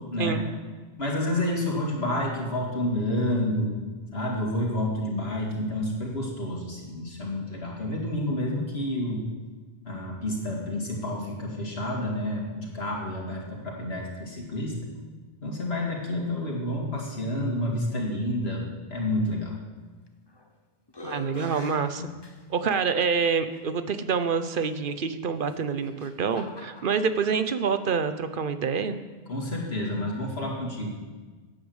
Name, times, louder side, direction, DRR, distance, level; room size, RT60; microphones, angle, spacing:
voice 1, 1.0-3.7 4.1-9.2 9.8-14.9 15.4-19.5 22.0-22.1 29.3-30.9, left 1 dB, 75° left, -2 dB, 2.6 m, -29 dB
sound 1, 20.1-20.5 20.9-22.8 23.5-23.6 25.4-27.1, left 1 dB, 25° left, 1.0 m, -44 dB
voice 2, 21.0-22.1 22.5-29.0, right 5 dB, 55° right, 10 dB, 1.0 m, -27 dB
11.5 x 8.7 x 8.1 m, 1.4 s
omnidirectional pair, 1.1 m